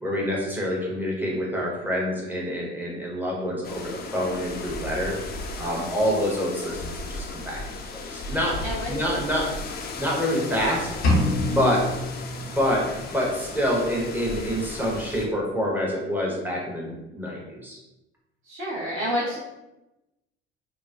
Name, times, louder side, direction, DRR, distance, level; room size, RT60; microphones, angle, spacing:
voice 1, 0.0-5.1 5.6-7.6 7.9-8.6 8.9-9.5 10.0-10.9 11.5-11.8 12.4-12.9 13.1-17.8, equal, 5° right, -4 dB, 0.9 m, -26 dB
sound 1, 3.6-15.3, left 3 dB, 30° left, 0.5 m, -36 dB
voice 2, 8.6-9.0 11.5-11.7 18.4-19.4, equal, 35° right, -11 dB, 1.1 m, -29 dB
sound 2, 11.0-13.0, left 1 dB, 80° left, 0.6 m, -25 dB
3.0 x 2.1 x 2.4 m, 0.96 s
figure-of-eight pair, 55°, 33 cm